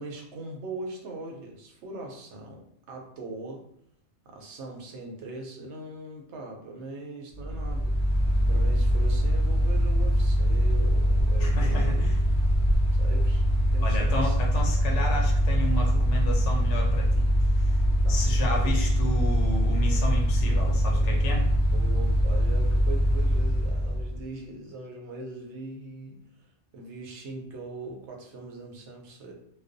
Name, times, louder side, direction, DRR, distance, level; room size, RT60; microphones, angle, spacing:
voice 1, 0.0-3.7 4.3-7.9 8.5-12.1 12.9-13.4 13.7-14.7 15.9-16.0 18.0-18.3 18.6-18.8 21.7-29.3, right 2 dB, 70° right, 1 dB, 0.8 m, -41 dB
Mechanical fan, 7.4-24.2, equal, 60° left, 0.6 m, -23 dB
voice 2, 11.4-12.1 13.8-17.3 18.1-21.5, left 1 dB, 80° left, 0 dB, 0.9 m, -32 dB
2.3 x 2.2 x 2.5 m, 0.69 s
omnidirectional pair, 1.2 m